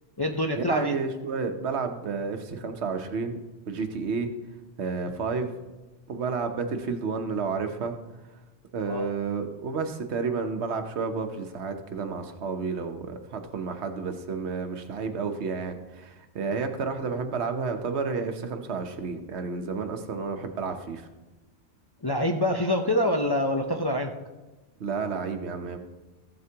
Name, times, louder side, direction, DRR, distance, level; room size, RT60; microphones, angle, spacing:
voice 1, 0.2-1.0 8.9-9.1 22.0-24.1, left 1 dB, 30° left, 2 dB, 0.5 m, -26 dB
voice 2, 0.7-3.4 3.7-4.3 4.8-5.5 6.1-7.9 8.7-21.1 24.8-25.8, right 5 dB, 70° right, 6 dB, 1.1 m, -31 dB
14.5 x 7.8 x 2.9 m, 1.1 s
omnidirectional pair, 1.2 m